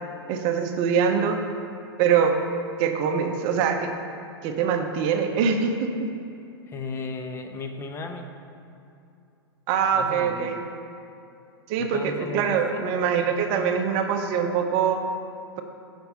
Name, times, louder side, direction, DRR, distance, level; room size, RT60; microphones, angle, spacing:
voice 1, 0.3-1.4 2.0-2.4 2.8-3.9 4.4-6.1 9.7-10.6 11.7-15.0, right 7 dB, 40° right, 5 dB, 0.6 m, -23 dB
voice 2, 6.7-8.3 9.9-10.6 11.8-13.0, left 4 dB, 20° left, 5 dB, 0.5 m, -35 dB
5.6 x 5.2 x 5.4 m, 2.6 s
hypercardioid pair, 105°, 13 cm